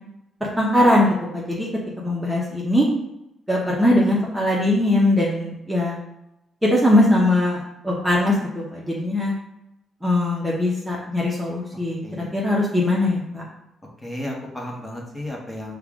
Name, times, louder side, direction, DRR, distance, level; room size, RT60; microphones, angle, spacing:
voice 1, 0.6-1.7 2.0-2.9 3.5-6.0 6.6-9.4 10.0-13.5, left 1 dB, 5° right, -4 dB, 0.9 m, -20 dB
voice 2, 14.0-15.8, left 1 dB, 15° left, -1 dB, 1.1 m, -33 dB
5.5 x 2.3 x 3.6 m, 0.87 s
cardioid pair, 90°, 0 cm